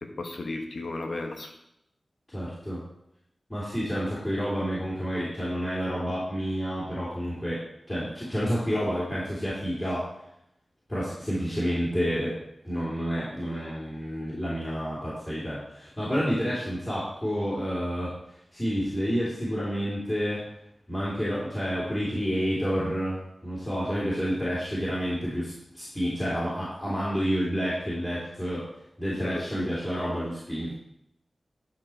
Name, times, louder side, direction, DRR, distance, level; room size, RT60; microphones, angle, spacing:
voice 1, 0.0-1.5 29.2-29.7, left 2 dB, 75° left, 4 dB, 1.1 m, -35 dB
voice 2, 2.3-2.8 3.5-10.1 10.9-12.3 12.6-18.2 18.5-20.4 20.9-28.7 29.0-30.8, equal, 20° left, -8 dB, 3.2 m, -29 dB
10.5 x 4.8 x 4.5 m, 0.81 s
cardioid pair, 45°, 0 cm